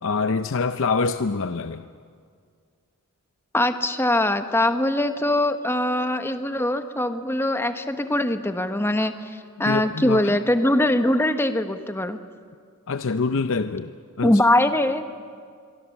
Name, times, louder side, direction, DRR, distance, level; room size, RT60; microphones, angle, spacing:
voice 1, 0.0-1.9 9.7-10.4 12.9-13.9 14.2-14.4, left 4 dB, 65° left, 10 dB, 0.6 m, -25 dB
voice 2, 3.5-12.2 14.2-15.0, left 1 dB, 10° left, 8 dB, 1.1 m, -22 dB
25.5 x 24.0 x 7.2 m, 2.1 s
head